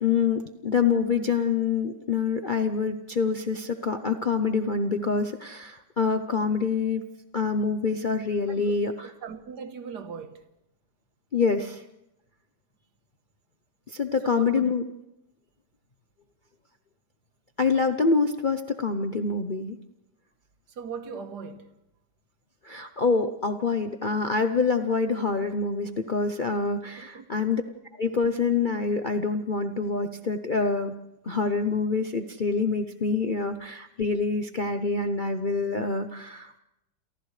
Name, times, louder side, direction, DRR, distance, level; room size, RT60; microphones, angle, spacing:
voice 1, 0.0-7.0 7.3-9.1 11.3-11.8 13.9-14.8 17.6-19.8 22.6-27.6 27.9-30.9 31.2-36.6, left 4 dB, 45° left, 0.6 m, -26 dB
voice 2, 8.5-10.4 14.2-14.7 20.7-21.7 27.0-27.5, right 7 dB, 70° right, 1.8 m, -38 dB
30.0 x 28.0 x 3.3 m
omnidirectional pair, 1.9 m